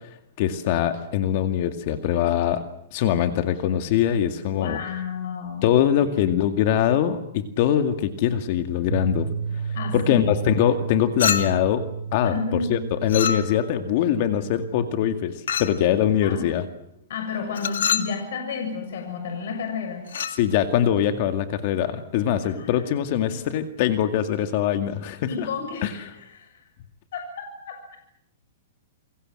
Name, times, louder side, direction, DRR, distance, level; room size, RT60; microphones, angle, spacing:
voice 1, 0.4-2.6 2.9-4.8 5.6-9.3 9.9-11.8 12.1-15.3 15.6-16.7 20.3-25.5 25.8-25.9, left 10 dB, 45° left, 8 dB, 2.2 m, -22 dB
voice 2, 4.5-5.7 6.1-6.6 9.7-10.4 12.2-12.8 16.2-16.5 17.1-20.1 22.4-23.4 25.2-26.5 27.1-28.0, left 5 dB, 65° left, 4 dB, 6.8 m, -32 dB
Bass guitar, 8.9-15.2, right 5 dB, 90° right, 5.2 m, -33 dB
Chink clink, 11.2-11.8 13.1-13.8 15.5-15.8 17.5-18.2 20.1-20.4, left 7 dB, 85° left, 2.3 m, -26 dB
28.5 x 24.0 x 7.8 m, 0.75 s
hypercardioid pair, 155°, 0 cm